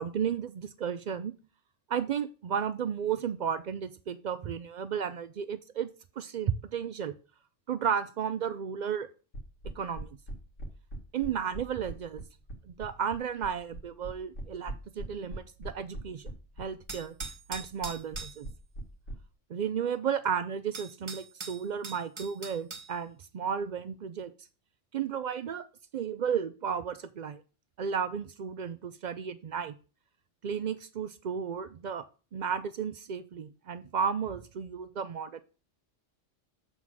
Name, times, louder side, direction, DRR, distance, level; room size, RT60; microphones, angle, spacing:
voice 1, 0.0-1.3 1.9-5.9 6.2-7.1 7.7-9.1 9.8-10.2 11.1-12.2 12.6-16.3 16.6-17.2 17.5-18.5 19.5-24.3 24.9-25.7 25.9-27.4 27.8-29.8 30.4-32.0 32.3-35.4, right 7 dB, 65° right, 12 dB, 0.4 m, -33 dB
sound 1, 9.3-19.1, right 1 dB, 85° left, 2.1 m, -40 dB
sound 2, 16.9-18.4 20.2-20.3 20.7-22.9, right 4 dB, 25° right, 0.9 m, -41 dB
7.4 x 3.6 x 6.1 m, 0.35 s
omnidirectional pair, 1.2 m